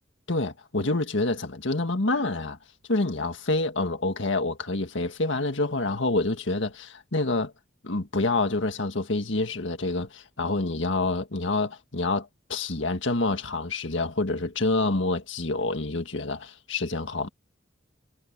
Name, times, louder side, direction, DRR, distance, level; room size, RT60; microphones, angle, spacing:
voice 1, 0.3-2.6 2.9-7.5 7.8-17.3, left 2 dB, 65° left, 1.8 m, -27 dB
head